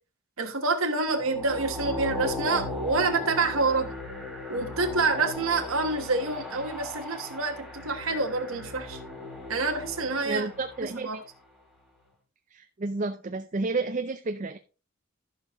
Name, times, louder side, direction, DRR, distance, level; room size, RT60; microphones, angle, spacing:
voice 1, 0.4-3.9 4.5-9.0 9.5-10.4 10.8-11.2, right 3 dB, 80° right, 1.2 m, -27 dB
sound 1, 1.1-11.2, left 2 dB, ahead, 2.5 m, -37 dB
voice 2, 10.3-11.1 12.5-14.6, right 3 dB, 35° right, 0.4 m, -31 dB
14.5 x 5.7 x 3.0 m
head